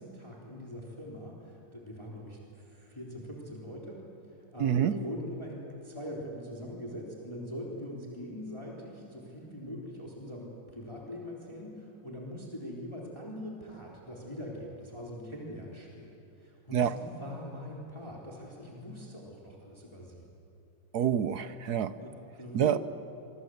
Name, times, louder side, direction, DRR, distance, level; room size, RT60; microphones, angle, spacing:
voice 1, 0.0-20.3 22.0-22.8, equal, 15° left, -3 dB, 3.7 m, -42 dB
voice 2, 4.6-4.9 16.7-16.9 20.9-21.9 22.5-22.8, right 9 dB, 65° right, 13 dB, 1.1 m, -27 dB
26.0 x 25.0 x 7.9 m, 2.8 s
omnidirectional pair, 2.2 m